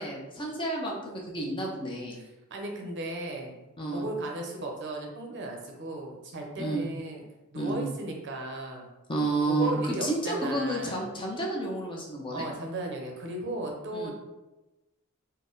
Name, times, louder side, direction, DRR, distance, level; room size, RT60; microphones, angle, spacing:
voice 1, 0.0-2.2 3.8-4.0 6.6-6.8 7.5-7.8 9.1-12.5 13.9-14.1, right 2 dB, 25° left, -2 dB, 0.6 m, -31 dB
voice 2, 2.2-3.6 3.9-7.2 7.5-8.9 9.5-11.1 12.3-14.1, right 1 dB, 55° right, 1 dB, 0.7 m, -36 dB
3.9 x 2.2 x 3.8 m, 1.0 s
head